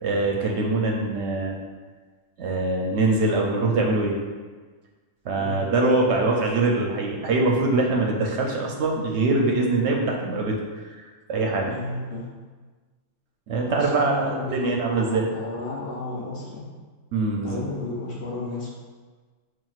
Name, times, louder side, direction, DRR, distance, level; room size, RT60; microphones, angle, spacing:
voice 1, 0.0-1.6 2.4-4.2 5.2-11.7 13.5-15.3 17.1-17.6, right 2 dB, 70° right, 0 dB, 0.8 m, -23 dB
voice 2, 11.7-12.3 13.7-16.7 17.4-18.7, left 2 dB, 55° left, -4 dB, 0.8 m, -32 dB
5.6 x 2.4 x 2.4 m, 1.4 s
omnidirectional pair, 1.3 m